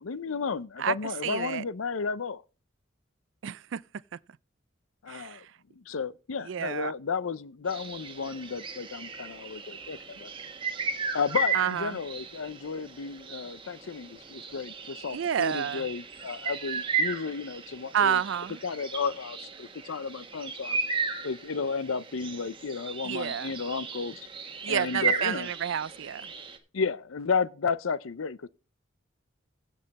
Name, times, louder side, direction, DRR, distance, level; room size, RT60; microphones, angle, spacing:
voice 1, 0.0-2.4 5.0-10.3 11.1-18.2 18.6-20.8 21.2-24.3 24.7-25.5 26.7-28.5, left 5 dB, 85° left, 0.6 m, -33 dB
voice 2, 1.2-1.6 3.4-3.8 5.1-5.4 6.5-6.9 11.5-11.9 15.1-15.8 17.9-18.6 23.0-23.5 24.6-26.2, right 8 dB, 65° right, 0.4 m, -29 dB
sound 1, 7.7-26.6, right 5 dB, 25° right, 1.3 m, -35 dB
16.0 x 5.5 x 4.1 m
head